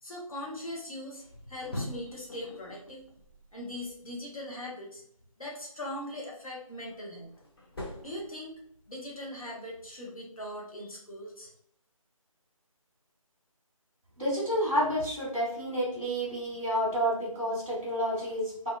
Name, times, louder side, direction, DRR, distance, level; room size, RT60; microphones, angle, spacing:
voice 1, 0.0-3.0 3.5-5.0 5.4-7.3 8.0-8.5 8.9-11.5, left 1 dB, 75° left, -3 dB, 0.9 m, -40 dB
sound 1, 1.1-4.3 6.5-9.0, left 1 dB, 45° left, 0.7 m, -44 dB
voice 2, 14.2-18.7, equal, 5° left, -13 dB, 0.4 m, -30 dB
2.7 x 2.1 x 2.4 m, 0.67 s
figure-of-eight pair, 160°, 18 cm